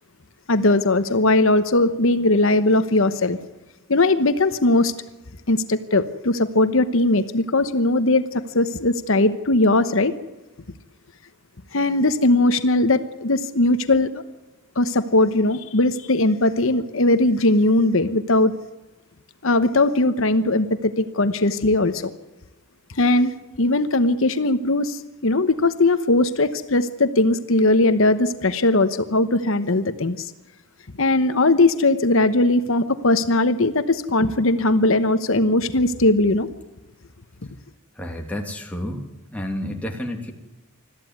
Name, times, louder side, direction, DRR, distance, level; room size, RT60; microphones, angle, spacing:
voice 1, 0.5-3.4 3.9-4.9 5.5-10.1 11.7-14.1 14.8-18.5 19.4-22.1 22.9-23.3 23.6-30.3 31.0-36.5, left 2 dB, 65° left, 11 dB, 1.0 m, -19 dB
voice 2, 38.0-39.0 39.3-40.3, left 1 dB, 5° left, 1 dB, 2.6 m, -30 dB
22.0 x 14.0 x 9.5 m, 1.1 s
head